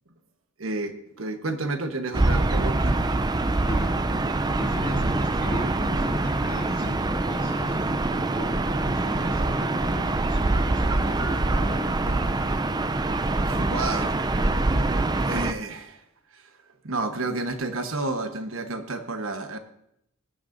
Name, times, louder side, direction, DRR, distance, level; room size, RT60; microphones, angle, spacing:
voice 1, 0.6-3.0 3.7-3.8 13.4-14.2 15.3-16.0 16.3-16.5 16.8-19.6, right 2 dB, 75° right, 7 dB, 1.1 m, -31 dB
Gull seagull / Ocean, 2.1-15.5, right 2 dB, 20° right, 0.4 m, -24 dB
voice 2, 3.7-4.0 4.6-7.8 8.3-12.6 14.4-15.0, equal, 40° left, -1 dB, 2.8 m, -38 dB
sound 1, 6.8-15.2, equal, 20° left, 1.6 m, -46 dB
18.5 x 10.5 x 2.6 m, 0.75 s
head